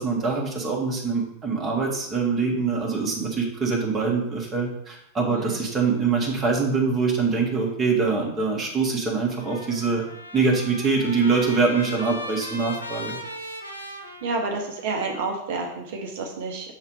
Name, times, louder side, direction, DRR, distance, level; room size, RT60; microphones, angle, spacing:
voice 1, 0.0-10.0 10.3-13.2, right 4 dB, 20° right, -2 dB, 1.5 m, -24 dB
voice 2, 5.3-5.6 14.2-16.7, right 3 dB, 55° right, 2 dB, 0.8 m, -29 dB
Trumpet, 9.3-14.9, equal, 85° left, 0.7 m, -38 dB
6.7 x 3.2 x 4.7 m, 0.76 s
figure-of-eight pair, 90°, 0 cm